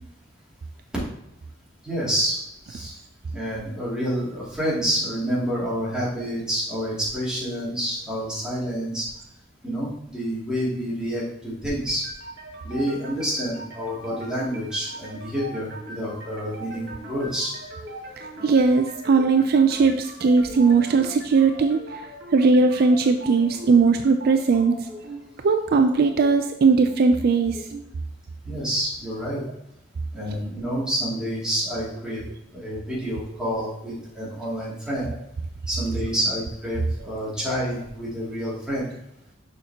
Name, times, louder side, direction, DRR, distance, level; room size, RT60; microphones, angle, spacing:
voice 1, 1.8-2.4 2.6-3.0 3.3-9.1 9.6-12.0 12.6-17.5 28.5-29.4 30.1-32.2 32.5-35.1 35.7-38.9, equal, 5° right, -8 dB, 2.6 m, -28 dB
sound 1, 11.9-27.9, right 1 dB, 75° right, 2.2 m, -40 dB
voice 2, 18.2-22.1 22.3-24.7 25.4-27.6, right 4 dB, 55° right, 7 dB, 0.4 m, -19 dB
6.6 x 5.8 x 2.9 m, 0.82 s
head